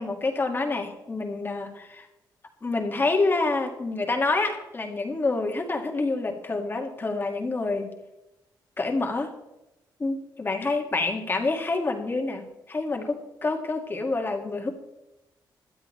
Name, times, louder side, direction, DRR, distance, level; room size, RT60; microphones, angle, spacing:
voice 1, 0.0-2.1 2.6-7.9 8.8-9.3 10.0-14.7, left 3 dB, 25° left, 3 dB, 2.0 m, -27 dB
18.0 x 12.0 x 3.2 m, 0.94 s
cardioid pair, 135°, 8 cm